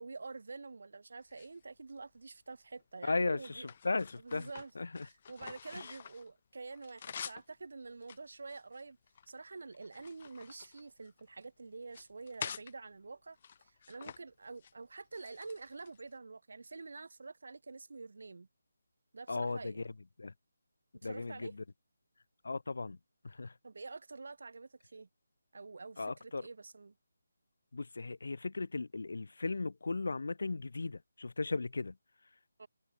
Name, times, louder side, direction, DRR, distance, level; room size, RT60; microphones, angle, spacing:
voice 1, 0.0-3.7 4.2-4.7 5.0-9.0 9.3-18.5 19.1-19.9 20.9-21.5 23.6-25.1 25.5-26.9 32.6-32.7, right 3 dB, 65° right, 2.1 m, -47 dB
sound 1, 1.2-2.2 2.8-6.3 6.6-7.5 8.0-9.3 9.7-11.4 11.8-12.7 13.4-14.2 14.5-14.7 15.1-16.1, left 7 dB, 40° left, 0.7 m, -48 dB
voice 2, 3.0-4.5 4.8-5.1 19.3-19.8 20.2-20.3 21.0-21.5 22.4-23.0 23.2-23.5 26.0-26.5 27.7-31.9, left 3 dB, 70° left, 0.3 m, -36 dB
figure-of-eight pair, 160°, 0 cm